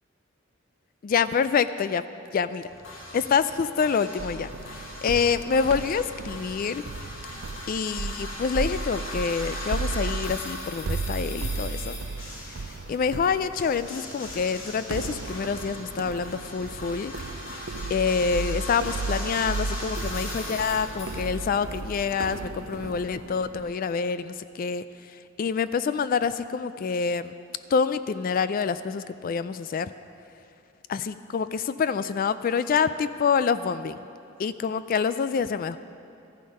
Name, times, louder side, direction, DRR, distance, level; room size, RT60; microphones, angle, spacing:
voice 1, 1.0-2.0 2.3-2.7 3.1-6.8 7.7-12.0 12.5-17.1 17.9-27.3 27.7-29.9 30.9-34.0 34.4-35.8, left 6 dB, 45° left, 13 dB, 0.3 m, -27 dB
sound 1, 2.7-21.6, left 2 dB, 75° left, 2.2 m, -39 dB
sound 2, 4.2-23.7, right 3 dB, 85° right, 0.5 m, -35 dB
14.0 x 11.5 x 5.3 m, 2.7 s
head